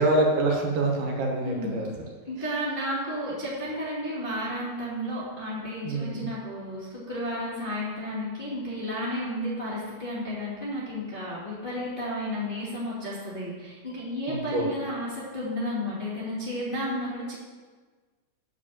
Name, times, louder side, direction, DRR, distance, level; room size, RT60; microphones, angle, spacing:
voice 1, 0.0-1.9 5.8-6.3 14.3-14.6, right 2 dB, 85° right, 0 dB, 3.4 m, -25 dB
voice 2, 2.2-17.3, equal, 20° left, -8 dB, 1.7 m, -32 dB
9.2 x 5.0 x 7.5 m, 1.4 s
omnidirectional pair, 4.4 m